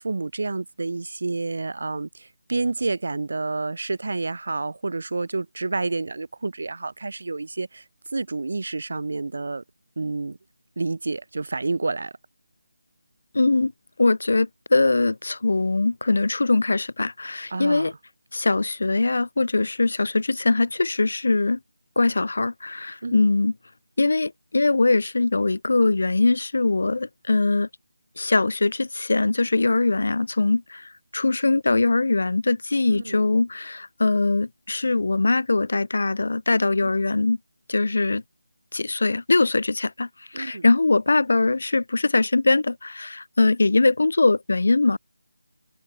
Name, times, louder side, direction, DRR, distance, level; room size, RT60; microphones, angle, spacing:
voice 1, 0.0-7.8 8.1-9.6 10.0-10.4 10.8-12.1 17.5-17.9 23.0-23.3 32.8-33.2 36.8-36.9 40.3-40.7, right 3 dB, 45° right, 5.9 m, -29 dB
voice 2, 13.3-13.7 14.0-17.9 18.3-21.6 22.0-23.5 24.0-27.7 28.2-37.4 37.7-38.2 38.7-45.0, left 3 dB, 55° left, 2.6 m, -22 dB
figure-of-eight pair, 180°, 0 cm